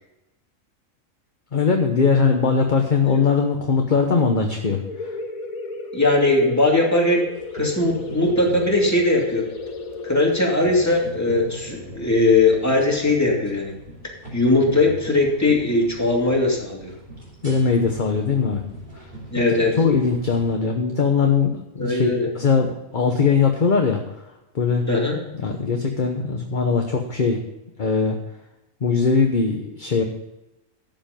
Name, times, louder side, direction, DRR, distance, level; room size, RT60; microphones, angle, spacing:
voice 1, 1.5-5.2 17.4-18.6 19.3-19.5 19.8-24.0 24.5-24.8 25.4-27.4 27.8-28.2 28.8-30.0, left 5 dB, 40° left, 3 dB, 1.1 m, -20 dB
sound 1, 4.8-14.2, left 3 dB, 85° left, 1.6 m, -35 dB
voice 2, 5.9-7.3 7.5-9.5 10.0-13.7 14.3-16.9 19.3-19.8 21.8-22.3 24.9-25.2, left 2 dB, 10° left, -2 dB, 2.6 m, -20 dB
sound 2, 7.3-20.5, right 1 dB, 35° right, 3.2 m, -40 dB
12.0 x 7.8 x 5.2 m, 0.95 s
omnidirectional pair, 1.4 m